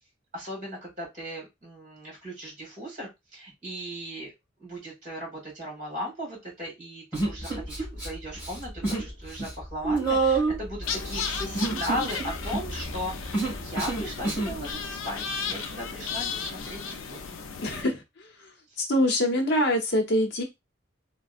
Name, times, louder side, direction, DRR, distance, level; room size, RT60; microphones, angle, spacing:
voice 1, 0.3-4.3 4.6-15.2 15.5-16.8 17.1-17.4, equal, 40° right, -2 dB, 2.0 m, -37 dB
Human voice, 7.1-8.1 8.4-9.1 9.4-14.6, right 3 dB, 10° right, 1.8 m, -28 dB
sound 1, 10.8-17.8, left 6 dB, 80° left, 0.5 m, -35 dB
voice 2, 17.6-18.0 18.8-20.4, left 1 dB, 60° left, 1 dB, 0.9 m, -24 dB
3.5 x 2.2 x 2.4 m, 0.21 s
head